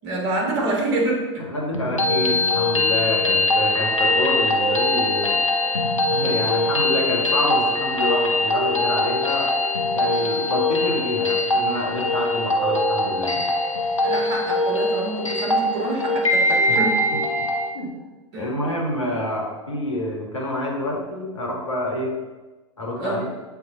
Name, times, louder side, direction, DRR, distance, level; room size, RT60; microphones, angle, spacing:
voice 1, 0.0-1.4 14.0-17.0 18.3-18.5 22.9-23.2, right 2 dB, 50° right, -2 dB, 1.6 m, -26 dB
voice 2, 1.4-5.4 6.1-9.5 9.9-13.4 16.7-16.8 17.7-17.9 18.3-22.1 22.8-23.3, left 1 dB, 75° left, -1 dB, 1.4 m, -27 dB
sound 1, 1.7-17.7, left 2 dB, 90° left, 0.7 m, -22 dB
7.8 x 3.4 x 3.7 m, 1.2 s
figure-of-eight pair, 90°, 16 cm